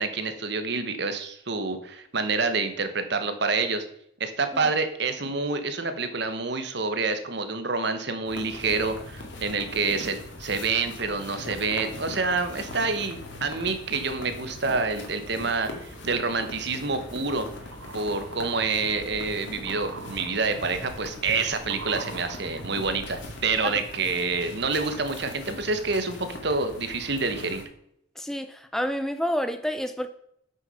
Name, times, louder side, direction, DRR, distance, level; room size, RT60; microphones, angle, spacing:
voice 1, 0.0-3.8 4.2-17.5 17.9-27.6, right 4 dB, 55° right, 9 dB, 1.2 m, -27 dB
sound 1, 8.3-27.6, left 2 dB, 65° left, 2.2 m, -41 dB
sound 2, 14.7-22.3, right 1 dB, 25° left, 3.0 m, -52 dB
sound 3, 15.0-15.4 15.9-23.7 24.0-24.1, right 3 dB, 75° right, 0.9 m, -45 dB
voice 2, 28.7-30.1, equal, ahead, 9 dB, 0.4 m, -28 dB
8.3 x 6.6 x 5.5 m, 0.73 s
head